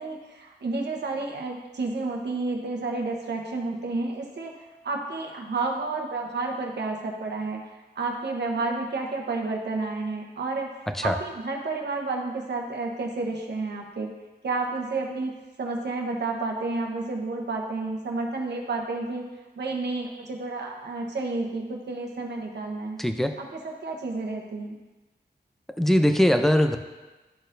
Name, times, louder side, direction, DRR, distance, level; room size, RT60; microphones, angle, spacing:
voice 1, 0.0-4.5 4.8-7.6 8.0-10.7 11.0-14.1 14.4-19.3 19.6-23.0 23.4-24.7, right 3 dB, 85° right, 1 dB, 1.1 m, -30 dB
voice 2, 23.0-23.3 25.8-26.8, equal, ahead, 6 dB, 0.5 m, -21 dB
12.5 x 4.3 x 2.6 m, 1.2 s
wide cardioid pair, 90°, 17 cm